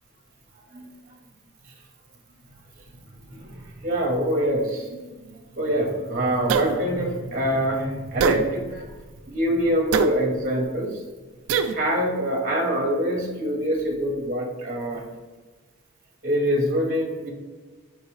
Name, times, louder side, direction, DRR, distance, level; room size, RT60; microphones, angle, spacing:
voice 1, 3.3-8.9 9.3-11.0 11.7-15.0 16.2-17.3, equal, 40° right, 1 dB, 0.7 m, -25 dB
sound 1, 6.5-6.8 8.2-8.4 9.9-10.1 11.5-11.8, right 6 dB, 70° right, 0.3 m, -22 dB
4.6 x 3.2 x 3.1 m, 1.3 s
head